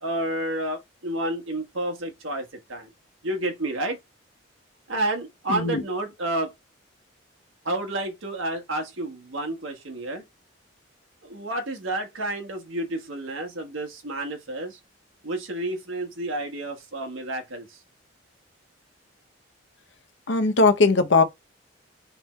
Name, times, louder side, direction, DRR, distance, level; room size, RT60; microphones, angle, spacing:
voice 1, 0.0-2.9 3.2-4.0 4.9-6.5 7.6-10.2 11.2-14.8 15.2-17.8, right 1 dB, 80° right, 1.3 m, -30 dB
voice 2, 5.5-5.8 20.3-21.2, left 3 dB, 65° left, 0.8 m, -19 dB
3.5 x 3.3 x 4.3 m
head